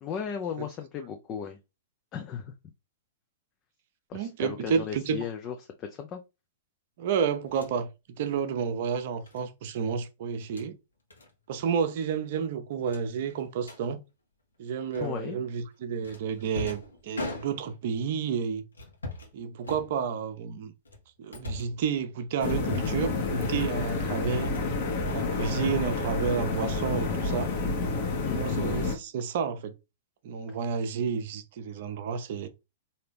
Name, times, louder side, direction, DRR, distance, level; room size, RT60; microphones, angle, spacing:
voice 1, 0.0-1.6 2.1-2.5 4.1-6.2 15.0-15.4 28.2-28.6, left 7 dB, 30° left, 0.5 m, -36 dB
voice 2, 4.1-5.2 7.0-7.9 8.2-10.8 11.5-14.0 14.6-18.6 19.3-20.7 21.2-24.5 25.1-27.5 28.3-29.7 30.2-32.5, right 6 dB, 50° right, 0.6 m, -31 dB
sound 1, 7.5-7.8 9.3-9.5 10.3-10.7 11.1-11.3 11.6-11.8 12.1-12.2 12.9-13.8 14.9-15.4 16.0-17.9 18.7-19.3 19.6-20.3 20.8-21.8 22.4-23.1 23.4-23.8 24.2-24.7 25.0-25.9, left 2 dB, 80° left, 1.1 m, -41 dB
sound 2, 22.4-28.9, left 3 dB, 45° left, 1.1 m, -29 dB
3.8 x 2.7 x 3.4 m
figure-of-eight pair, 105°, 0 cm